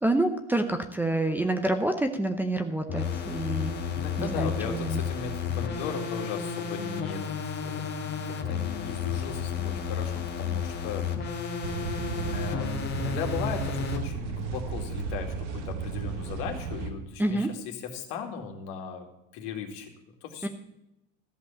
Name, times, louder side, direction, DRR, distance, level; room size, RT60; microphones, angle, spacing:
voice 1, 0.0-3.7 4.2-5.0 17.2-17.5 20.4-20.5, right 2 dB, 5° right, 3 dB, 0.7 m, -27 dB
sound 1, 2.9-14.0, left 6 dB, 30° left, 1.7 m, -32 dB
voice 2, 3.9-11.1 12.1-19.1 19.3-19.9 20.2-20.5, left 6 dB, 60° left, 3 dB, 2.5 m, -37 dB
sound 2, 11.6-16.9, right 5 dB, 75° right, 1.9 m, -34 dB
14.0 x 5.4 x 8.3 m, 0.89 s
supercardioid pair, 120°, 36 cm